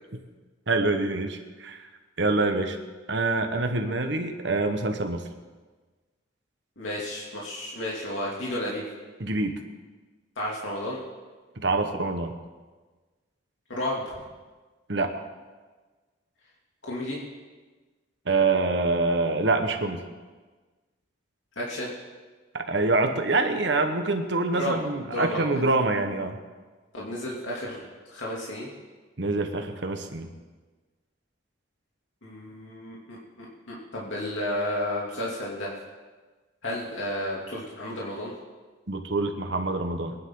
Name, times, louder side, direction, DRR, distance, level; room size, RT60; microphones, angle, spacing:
voice 1, 0.7-1.9 2.2-2.8 3.1-5.2 9.2-9.6 11.6-12.3 14.9-15.1 18.2-20.0 22.5-26.4 29.2-30.3 38.9-40.2, right 3 dB, 65° right, 5 dB, 1.3 m, -25 dB
voice 2, 6.8-8.8 10.4-11.0 13.7-14.0 16.8-17.2 21.6-21.9 24.6-25.5 26.9-28.7 32.2-35.7 36.6-38.3, left 1 dB, 85° left, -5 dB, 2.8 m, -32 dB
23.0 x 10.5 x 3.9 m, 1.3 s
head